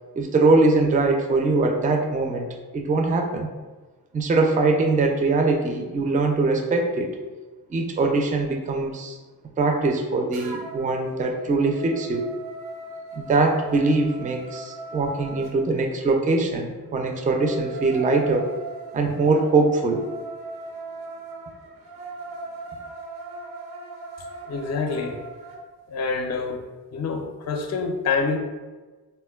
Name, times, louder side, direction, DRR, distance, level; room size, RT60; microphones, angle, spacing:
voice 1, 0.2-2.5 2.7-3.5 4.1-7.2 7.7-9.2 9.6-12.3 13.1-18.5 18.9-20.0, right 3 dB, 20° right, 3 dB, 0.4 m, -22 dB
sound 1, 10.3-10.9 11.3-15.5 17.0-25.6, right 3 dB, 85° right, 0.6 m, -39 dB
voice 2, 24.4-25.2 25.9-26.6 26.9-28.4, left 4 dB, 45° left, 4 dB, 0.5 m, -26 dB
3.6 x 2.1 x 2.3 m, 1.3 s
cardioid pair, 65°, 38 cm